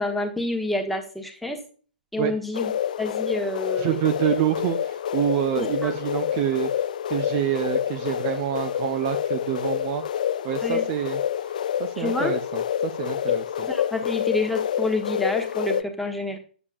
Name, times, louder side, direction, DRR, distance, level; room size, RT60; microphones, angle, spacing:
voice 1, 0.0-1.6 2.1-2.7 3.0-4.0 5.6-5.9 10.6-10.9 12.0-12.3 13.6-16.4, left 2 dB, ahead, 2 dB, 1.1 m, -28 dB
sound 1, 2.5-15.8, left 9 dB, 50° left, 0.4 m, -27 dB
voice 2, 3.8-6.7 7.1-10.0 10.4-11.2 11.8-13.7, right 12 dB, 30° right, 7 dB, 0.4 m, -27 dB
9.5 x 7.0 x 2.5 m, 0.40 s
figure-of-eight pair, 120°, 5 cm